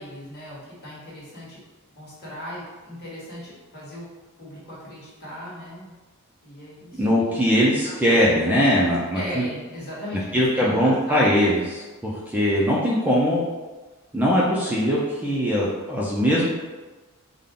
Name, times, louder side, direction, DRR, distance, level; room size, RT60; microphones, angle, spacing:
voice 1, 0.0-1.6 1.9-4.0 4.4-5.9 6.4-7.4 7.8-8.3 8.8-11.3, equal, 50° left, -7 dB, 1.4 m, -37 dB
voice 2, 7.0-9.5 10.3-13.4 14.1-16.5, equal, 10° right, -5 dB, 0.4 m, -21 dB
3.7 x 2.2 x 3.5 m, 1.2 s
head